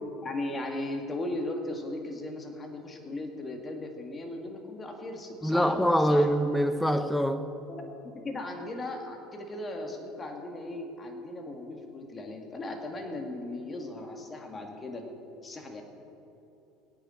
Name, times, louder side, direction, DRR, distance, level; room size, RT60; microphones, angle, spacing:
voice 1, 0.2-6.3 7.7-15.0 15.4-15.8, left 2 dB, 30° left, 2.2 m, -37 dB
voice 2, 5.4-7.5, equal, 5° left, 0.9 m, -24 dB
22.0 x 9.1 x 4.5 m
hypercardioid pair, 75°, 0 cm